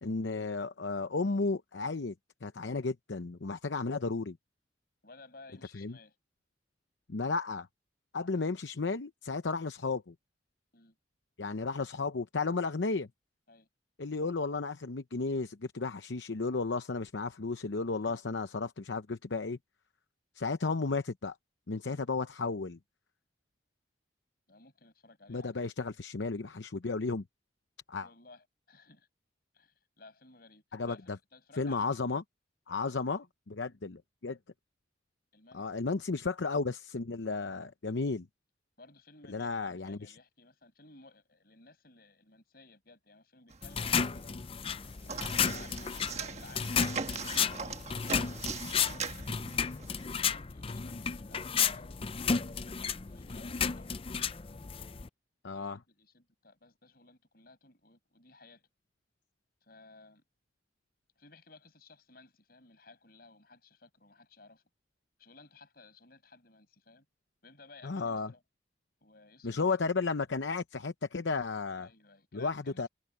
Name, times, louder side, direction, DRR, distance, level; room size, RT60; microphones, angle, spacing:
voice 1, 0.0-2.1 2.4-4.4 5.7-5.9 7.1-7.7 8.1-10.1 11.4-13.1 14.0-19.6 20.4-21.4 21.7-22.8 25.3-27.2 27.9-28.1 30.7-31.0 31.6-32.2 32.7-34.4 35.5-38.3 39.3-40.1 55.4-55.8 67.8-68.3 69.4-71.9 72.3-72.9, left 4 dB, 75° left, 0.8 m, -33 dB
voice 2, 5.0-6.2 10.7-11.0 13.5-13.7 18.1-18.2 21.9-22.0 24.5-25.6 28.0-29.1 29.5-32.2 32.7-33.3 35.3-35.8 38.8-44.4 45.0-48.2 48.6-49.5 50.0-52.1 52.5-54.3 55.5-58.7 59.6-60.2 61.2-64.6 65.2-67.1 67.4-68.4 69.0-69.9 71.8-72.9, left 3 dB, 55° left, 5.9 m, -57 dB
sound 1, 43.5-44.4 44.6-50.0, right 5 dB, 35° right, 1.4 m, -40 dB
sound 2, 43.6-55.1, left 6 dB, 30° left, 0.5 m, -33 dB
head